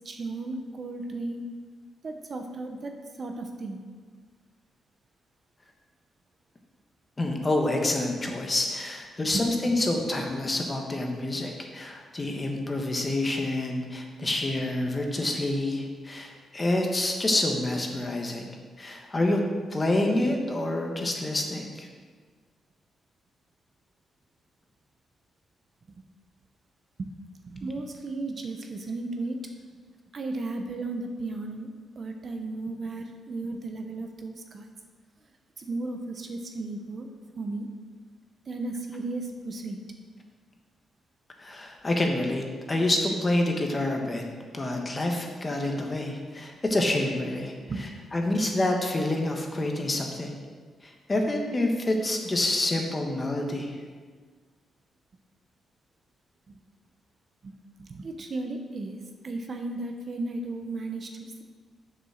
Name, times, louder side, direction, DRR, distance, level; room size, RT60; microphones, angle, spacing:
voice 1, 0.0-1.5 2.0-3.8 9.3-9.4 27.0-27.1 27.5-29.4 30.1-31.7 32.0-34.7 35.6-37.1 37.4-37.7 38.5-39.8 47.7-47.8 56.5-56.6 57.4-57.5 57.8-61.4, right 2 dB, 40° right, 4 dB, 0.9 m, -35 dB
voice 2, 7.2-18.5 18.8-19.4 19.7-21.9 41.4-44.2 44.5-50.3 50.8-53.8, left 1 dB, 20° left, 2 dB, 1.3 m, -27 dB
7.3 x 6.8 x 6.4 m, 1.5 s
cardioid pair, 130°, 0 cm